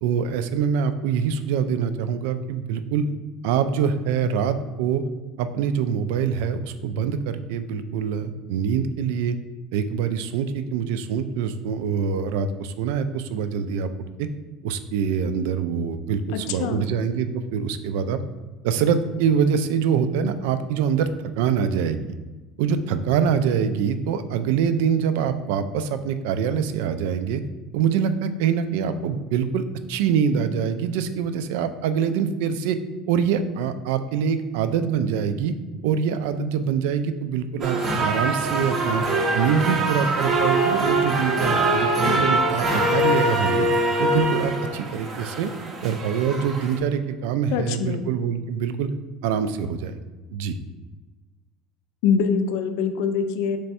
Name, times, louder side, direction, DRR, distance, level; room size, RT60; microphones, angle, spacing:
voice 1, 0.0-3.0 3.4-5.0 5.4-9.4 9.7-13.9 14.2-14.3 14.6-18.2 18.6-21.1 21.4-22.0 22.6-27.4 27.7-32.8 33.1-35.5 35.8-39.0 39.3-43.7 44.0-45.5 45.8-48.9 49.2-49.9 50.3-50.5, right 7 dB, 80° right, 10 dB, 0.3 m, -24 dB
voice 2, 16.3-17.0 47.5-48.1 52.0-53.6, left 6 dB, 70° left, 9 dB, 0.4 m, -24 dB
sound 1, 37.6-46.8, right 2 dB, 25° right, 0.5 m, -23 dB
3.4 x 3.2 x 4.2 m, 1.2 s
cardioid pair, 170°, 0 cm